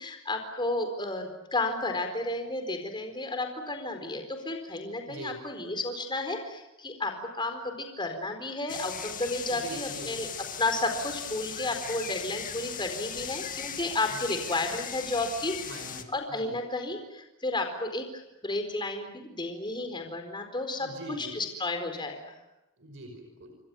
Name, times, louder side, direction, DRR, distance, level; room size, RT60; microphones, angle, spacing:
voice 1, 0.0-10.3 10.6-15.7 16.1-20.9 21.2-22.3, left 2 dB, 20° left, 6 dB, 4.3 m, -32 dB
sound 1, 8.7-16.0, left 8 dB, 40° left, 2.1 m, -38 dB
voice 2, 9.4-10.2 14.1-14.2 15.6-16.6 20.7-21.4 22.8-23.5, right 2 dB, 60° right, 5 dB, 5.5 m, -43 dB
29.0 x 25.0 x 7.1 m, 0.95 s
head